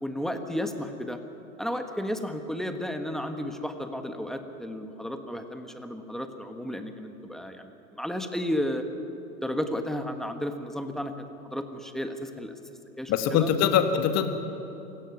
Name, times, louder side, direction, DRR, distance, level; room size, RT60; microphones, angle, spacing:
voice 1, 0.0-1.2 1.6-8.8 9.4-12.5 13.0-13.5, equal, ahead, 6 dB, 1.4 m, -33 dB
voice 2, 13.1-14.3, left 9 dB, 35° left, 8 dB, 1.8 m, -23 dB
27.0 x 17.0 x 6.1 m, 2.9 s
hypercardioid pair, 115°, 44 cm